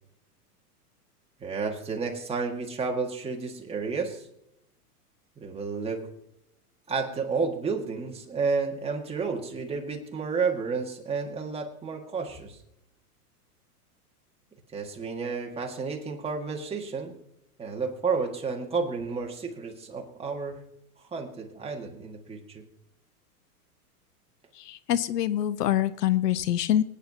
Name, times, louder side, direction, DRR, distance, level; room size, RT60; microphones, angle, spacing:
voice 1, 1.4-4.3 5.4-6.1 6.9-12.6 14.7-17.2 17.6-20.6 21.1-22.6, right 4 dB, 10° right, 1 dB, 1.6 m, -31 dB
voice 2, 24.7-26.8, left 12 dB, 85° left, 16 dB, 0.7 m, -25 dB
24.5 x 9.3 x 2.8 m, 0.81 s
hypercardioid pair, 130°, 47 cm